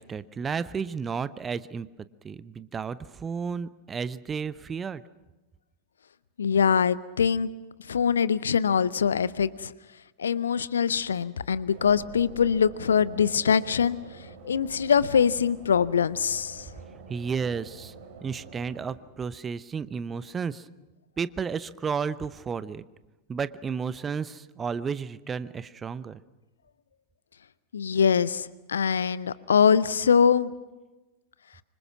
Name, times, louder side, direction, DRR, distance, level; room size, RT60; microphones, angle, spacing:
voice 1, 0.0-1.9 2.2-5.0 17.1-17.9 18.2-20.7 21.2-22.8 23.3-26.2, right 6 dB, 20° right, 16 dB, 0.8 m, -32 dB
voice 2, 6.4-7.5 7.9-9.7 10.2-14.0 14.4-16.7 27.7-30.5, left 7 dB, 70° left, 18 dB, 0.7 m, -23 dB
sound 1, 11.7-19.0, right 4 dB, 55° right, 4.0 m, -47 dB
26.0 x 25.5 x 6.0 m, 1.1 s
figure-of-eight pair, 90°, 0 cm